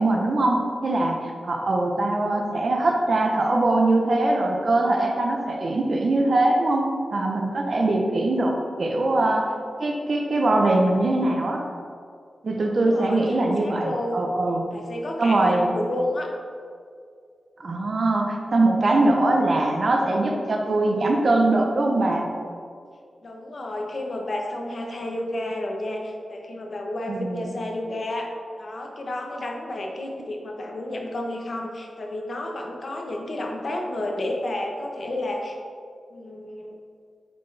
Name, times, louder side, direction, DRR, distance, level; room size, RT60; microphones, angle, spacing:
voice 1, 0.0-9.5 9.8-11.6 12.4-14.7 15.2-15.7 17.6-22.3 27.1-27.5, right 2 dB, 60° right, 1 dB, 0.7 m, -22 dB
voice 2, 12.6-14.3 14.7-16.3 23.2-28.3 28.6-35.6 36.1-36.8, left 1 dB, 55° left, 1 dB, 0.9 m, -31 dB
7.7 x 4.4 x 3.3 m, 2.2 s
wide cardioid pair, 90°, 0 cm